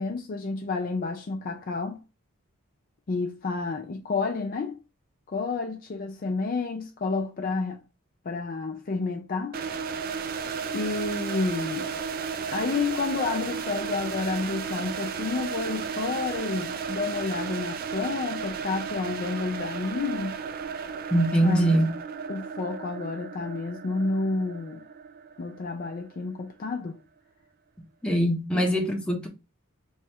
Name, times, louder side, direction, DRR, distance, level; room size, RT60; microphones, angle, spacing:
voice 1, 0.0-2.0 3.1-4.8 5.3-7.8 8.2-9.6 10.7-11.9 12.5-20.4 21.4-21.8 22.3-24.8 25.4-27.0 28.5-28.7, left 3 dB, 40° left, 0.4 m, -30 dB
sound 1, 9.5-26.4, right 6 dB, 40° right, 0.3 m, -34 dB
voice 2, 21.1-21.9 28.0-29.3, right 1 dB, 5° left, 0.7 m, -22 dB
3.1 x 2.4 x 4.3 m
head